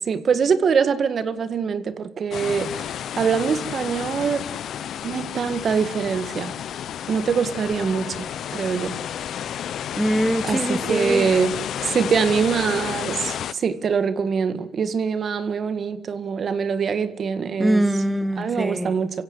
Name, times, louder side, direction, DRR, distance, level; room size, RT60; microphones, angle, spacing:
voice 1, 0.1-2.8 3.2-4.4 5.0-6.5 7.1-8.9 10.4-11.6 11.8-17.8 18.4-19.1, right 6 dB, 50° right, 1.8 m, -23 dB
sound 1, 2.3-13.5, left 9 dB, 70° left, 0.8 m, -31 dB
voice 2, 9.9-11.3 17.6-18.9, right 1 dB, 5° right, 1.1 m, -23 dB
27.5 x 16.0 x 9.8 m
cardioid pair, 90°, 0 cm